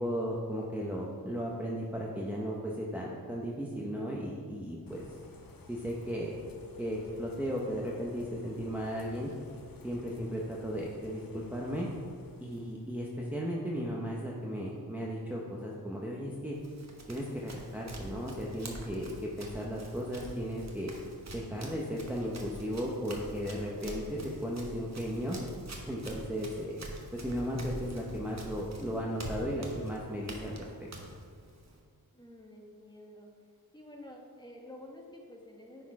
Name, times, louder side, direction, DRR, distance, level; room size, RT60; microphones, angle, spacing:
voice 1, 0.0-5.0 5.7-6.4 6.8-9.3 9.8-11.9 12.4-16.6 17.1-19.1 19.4-20.9 21.3-25.4 25.8-26.8 27.1-30.7, equal, 5° right, -4 dB, 0.8 m, -35 dB
Bird / Rain, 4.9-13.0, left 3 dB, 65° left, 0.9 m, -52 dB
Run, 16.5-31.8, right 1 dB, 45° right, 1.2 m, -46 dB
voice 2, 32.1-33.3 33.7-35.9, left 1 dB, 10° left, 0 dB, 1.2 m, -50 dB
9.8 x 4.5 x 4.8 m, 2.1 s
wide cardioid pair, 90°, 37 cm